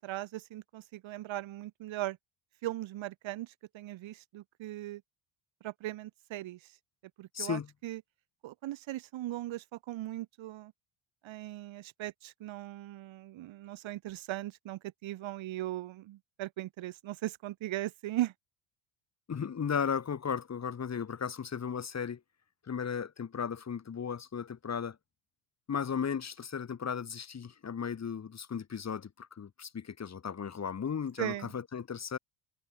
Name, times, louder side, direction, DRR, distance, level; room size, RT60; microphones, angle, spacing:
voice 1, 0.0-2.2 2.6-5.0 5.6-6.7 7.2-8.0 8.4-10.7 11.2-18.3 31.2-31.5, right 15 dB, 65° right, 6.4 m, -38 dB
voice 2, 7.3-7.7 19.3-22.2 22.7-25.0 25.7-32.2, left 7 dB, 30° left, 3.0 m, -35 dB
cardioid pair, 110°, 50 cm